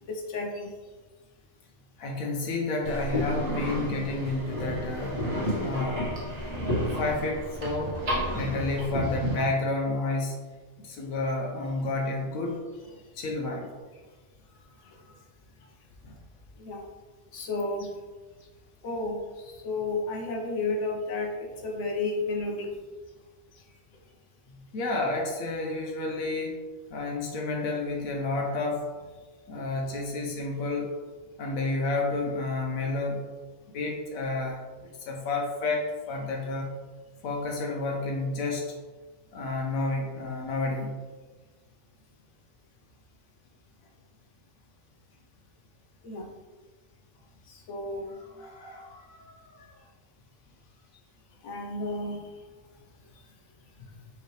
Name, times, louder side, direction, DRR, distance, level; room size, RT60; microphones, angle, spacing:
voice 1, 0.1-0.7 16.0-16.2 16.6-16.8 17.3-17.9 18.8-22.7 46.0-46.3 47.5-48.2 51.4-52.3 53.8-53.9, left 3 dB, 65° left, 2 dB, 0.9 m, -32 dB
voice 2, 2.0-5.2 5.6-6.1 6.9-8.0 8.3-10.4 10.8-12.6 13.1-13.7 24.5-26.6 26.9-29.1 29.5-30.9 31.4-33.2 33.7-36.7 37.2-38.6 39.3-40.9 48.2-49.7, left 2 dB, 85° left, 1 dB, 1.1 m, -30 dB
sound 1, 2.8-9.4, equal, 60° right, 1.5 m, -31 dB
4.8 x 3.2 x 3.1 m, 1.3 s
omnidirectional pair, 1.4 m